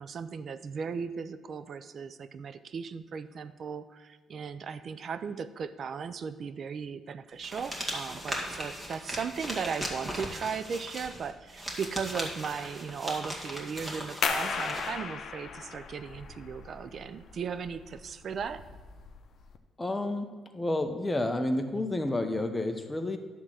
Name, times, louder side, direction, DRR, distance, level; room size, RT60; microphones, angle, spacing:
voice 1, 0.0-18.6, right 6 dB, 55° right, 12 dB, 0.5 m, -37 dB
sound 1, 7.4-14.9, equal, 15° right, 2.2 m, -38 dB
sound 2, 14.2-19.6, left 5 dB, 60° left, 0.9 m, -36 dB
voice 2, 19.8-23.2, left 1 dB, 15° left, 6 dB, 1.0 m, -30 dB
11.0 x 3.8 x 7.5 m, 1.4 s
cardioid pair, 90°, 0 cm